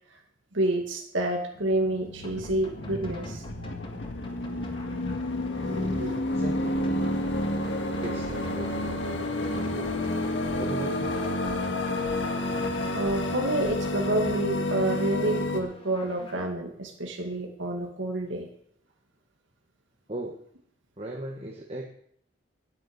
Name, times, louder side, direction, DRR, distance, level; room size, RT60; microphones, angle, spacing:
voice 1, 0.5-3.4 5.6-6.3 12.9-18.5, right 1 dB, 85° right, 2 dB, 2.2 m, -29 dB
sound 1, 1.5-15.6, left 1 dB, 75° left, 1.8 m, -30 dB
sound 2, 2.2-16.5, left 1 dB, 25° left, 1.7 m, -44 dB
voice 2, 6.3-6.8 8.0-10.1 10.6-11.2 20.1-20.4 21.0-21.9, right 1 dB, 30° right, 0 dB, 1.3 m, -38 dB
10.5 x 9.5 x 8.0 m, 0.67 s
head